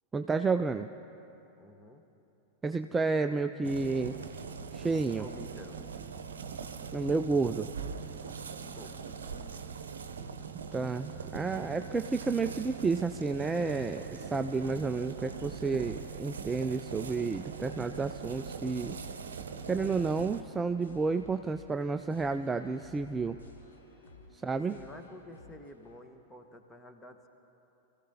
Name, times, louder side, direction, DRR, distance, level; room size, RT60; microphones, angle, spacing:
voice 1, 0.1-0.9 2.6-4.2 4.7-5.2 6.9-7.7 10.7-19.0 19.7-23.4 24.3-24.7, right 4 dB, 15° right, 8 dB, 0.4 m, -31 dB
voice 2, 1.6-2.0 5.1-5.8 8.5-9.1 24.7-27.3, left 1 dB, 10° left, 5 dB, 1.2 m, -50 dB
sound 1, 3.6-20.4, right 6 dB, 65° right, 0.8 m, -41 dB
sound 2, 15.6-26.0, left 2 dB, 70° left, 2.5 m, -55 dB
27.0 x 15.0 x 2.8 m, 3.0 s
figure-of-eight pair, 90°, 0 cm